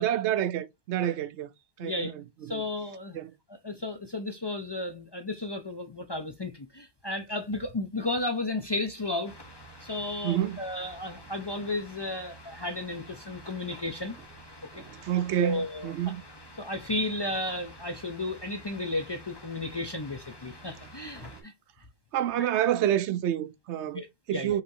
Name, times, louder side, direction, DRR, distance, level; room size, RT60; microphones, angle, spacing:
voice 1, 0.0-1.5 1.8-2.6 3.1-3.3 10.2-10.6 14.7-16.2 21.2-21.3 22.1-24.0 24.3-24.6, right 11 dB, 70° right, 0.8 m, -28 dB
voice 2, 1.8-2.1 2.5-3.2 3.5-9.3 9.8-14.2 14.7-14.8 15.4-15.9 16.6-21.5 23.9-24.6, left 2 dB, 40° left, 0.4 m, -33 dB
sound 1, 9.2-21.4, equal, 20° left, 1.1 m, -49 dB
5.6 x 3.3 x 2.6 m
omnidirectional pair, 1.2 m